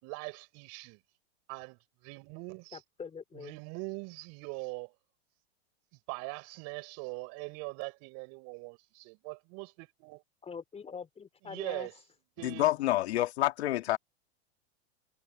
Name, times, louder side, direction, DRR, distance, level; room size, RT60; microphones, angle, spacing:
voice 1, 0.0-1.0 1.5-2.8 3.3-4.9 6.1-10.2 11.4-11.9 12.4-12.7, right 30 dB, 50° right, 7.3 m, -42 dB
voice 2, 2.7-3.6 10.4-11.9 12.7-13.0, left 6 dB, 20° left, 4.2 m, -44 dB
voice 3, 12.4-14.0, left 15 dB, 75° left, 2.7 m, -28 dB
hypercardioid pair, 120°, 33 cm